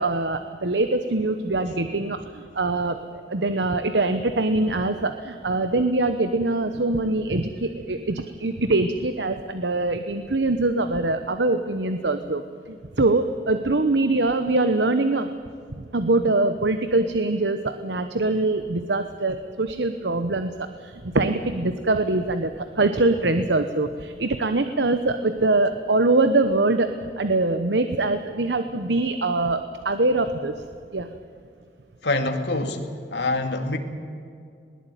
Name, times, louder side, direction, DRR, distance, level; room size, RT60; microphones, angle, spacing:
voice 1, 0.0-3.0 3.3-12.4 12.7-15.3 15.8-30.6 30.9-31.1, right 2 dB, 85° right, 9 dB, 1.1 m, -23 dB
voice 2, 32.0-32.8 33.1-33.8, left 2 dB, 85° left, 5 dB, 2.3 m, -25 dB
20.5 x 19.0 x 9.3 m, 2.3 s
head